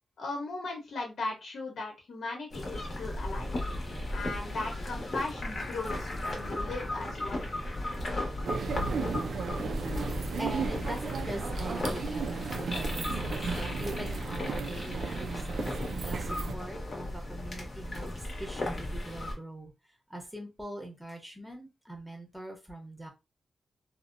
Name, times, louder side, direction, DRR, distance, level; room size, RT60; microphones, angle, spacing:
voice 1, 0.2-3.5 4.1-7.5, left 2 dB, 75° left, 0.9 m, -37 dB
sound 1, 2.5-19.3, left 1 dB, 45° left, 0.9 m, -36 dB
sound 2, 8.4-16.5, right 4 dB, 80° right, 0.3 m, -35 dB
voice 2, 10.4-19.7 20.1-23.1, right 1 dB, 5° right, 0.8 m, -42 dB
2.7 x 2.0 x 2.5 m
wide cardioid pair, 125°, 0 cm